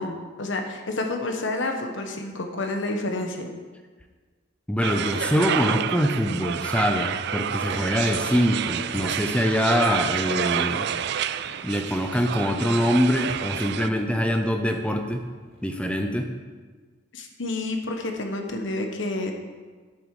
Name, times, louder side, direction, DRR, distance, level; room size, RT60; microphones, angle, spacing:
voice 1, 0.0-3.5 17.1-19.3, left 2 dB, 65° left, 4 dB, 1.2 m, -29 dB
voice 2, 4.7-10.9 11.6-15.2 15.6-16.3, equal, 5° left, 4 dB, 0.7 m, -24 dB
sound 1, 4.8-13.9, right 9 dB, 55° right, 0.4 m, -29 dB
sound 2, 6.8-16.0, right 1 dB, 30° right, 3.3 m, -46 dB
10.5 x 7.9 x 4.9 m, 1.4 s
head